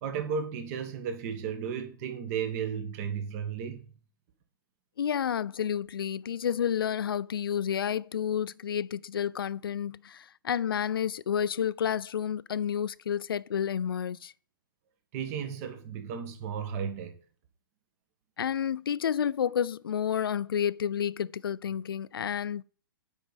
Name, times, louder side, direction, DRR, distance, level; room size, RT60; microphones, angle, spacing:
voice 1, 0.0-3.8 15.1-17.1, right 7 dB, 40° right, 1.6 m, -34 dB
voice 2, 5.0-14.3 18.4-22.6, left 8 dB, 75° left, 0.4 m, -30 dB
9.0 x 5.3 x 5.2 m
hypercardioid pair, 125°, 12 cm